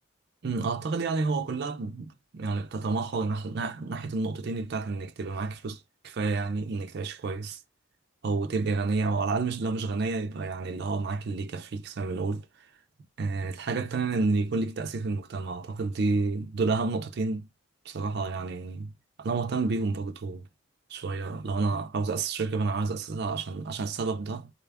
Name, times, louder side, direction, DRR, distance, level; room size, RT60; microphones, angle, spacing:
voice 1, 0.4-7.6 8.2-12.5 13.2-17.5 17.9-18.9 19.2-20.4 20.9-24.5, right 3 dB, 50° right, 0.4 m, -30 dB
4.0 x 2.3 x 3.4 m
head